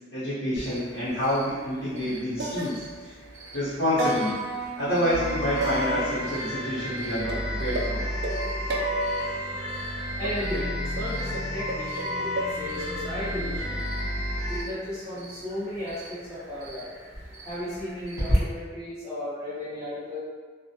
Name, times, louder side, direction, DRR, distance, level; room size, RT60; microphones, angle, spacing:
voice 1, 0.1-3.1 3.5-4.4 4.8-8.0, equal, 75° left, -11 dB, 0.7 m, -28 dB
Cricket, 0.5-18.3, equal, 15° right, 0.9 m, -40 dB
sound 1, 1.8-2.1 2.4-3.4 4.0-6.8 7.3-9.4 10.2-12.5, right 2 dB, 55° right, 0.3 m, -33 dB
sound 2, 5.1-14.6, left 1 dB, 45° left, 1.1 m, -31 dB
voice 2, 10.2-13.8 14.5-16.9 17.4-20.2, left 1 dB, 15° left, -15 dB, 1.0 m, -35 dB
2.3 x 2.0 x 2.7 m, 1.5 s
head